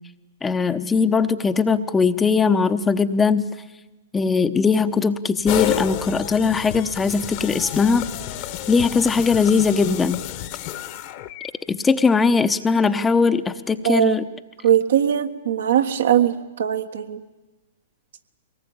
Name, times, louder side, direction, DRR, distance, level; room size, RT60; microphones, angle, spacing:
voice 1, 0.4-3.5 4.1-8.1 8.7-10.2 11.7-14.3, left 5 dB, 15° left, 10 dB, 0.9 m, -20 dB
sound 1, 5.5-11.5, left 13 dB, 45° left, 1.4 m, -30 dB
voice 2, 13.8-14.1 14.6-17.2, right 10 dB, 70° right, 7 dB, 1.5 m, -20 dB
23.0 x 19.0 x 8.8 m, 1.1 s
hypercardioid pair, 120°, 0 cm